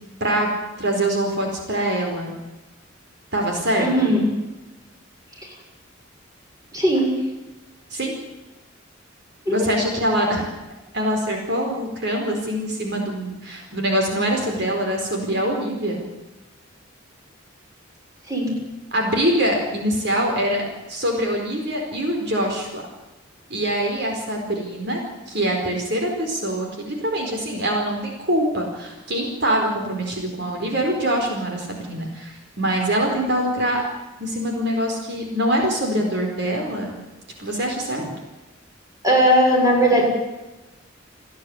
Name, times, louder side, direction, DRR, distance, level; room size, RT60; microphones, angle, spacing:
voice 1, 0.8-2.3 3.3-4.1 7.9-8.1 9.5-10.4 10.9-16.0 18.9-22.8 23.5-25.0 25.3-33.8 34.2-37.0 37.4-38.0, right 1 dB, 55° right, 1 dB, 4.7 m, -24 dB
voice 2, 3.8-4.3 6.7-7.1 9.4-9.5 18.3-18.5 39.0-40.0, equal, 15° right, -1 dB, 6.7 m, -18 dB
30.0 x 10.5 x 9.8 m, 1.1 s
head